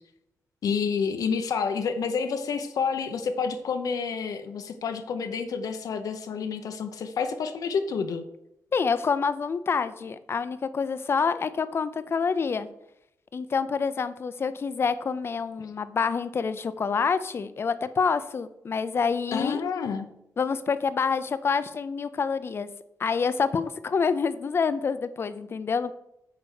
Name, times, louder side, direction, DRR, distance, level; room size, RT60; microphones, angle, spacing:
voice 1, 0.6-8.2 15.6-15.7 19.3-20.1, left 5 dB, 75° left, 7 dB, 0.7 m, -29 dB
voice 2, 8.7-12.7 13.3-19.6 20.4-22.7 23.0-25.9, left 5 dB, 40° left, 13 dB, 0.5 m, -27 dB
8.3 x 4.7 x 6.4 m, 0.82 s
wide cardioid pair, 145°, 6 cm